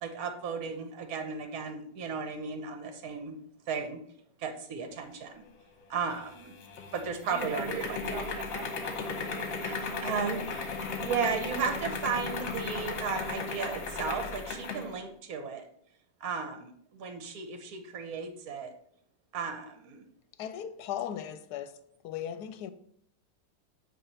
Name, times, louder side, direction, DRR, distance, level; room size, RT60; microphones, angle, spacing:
voice 1, 0.0-3.3 3.7-4.0 4.4-5.4 5.9-6.5 6.9-8.0 9.6-10.7 11.0-15.7 16.2-18.7 19.3-20.0, right 5 dB, 65° right, 1.4 m, -35 dB
sound 1, 6.1-14.9, left 4 dB, 60° left, 1.3 m, -36 dB
voice 2, 7.3-10.4, right 10 dB, 90° right, 1.3 m, -44 dB
voice 3, 20.4-22.7, left 10 dB, 80° left, 1.2 m, -37 dB
8.7 x 3.1 x 5.5 m
omnidirectional pair, 1.7 m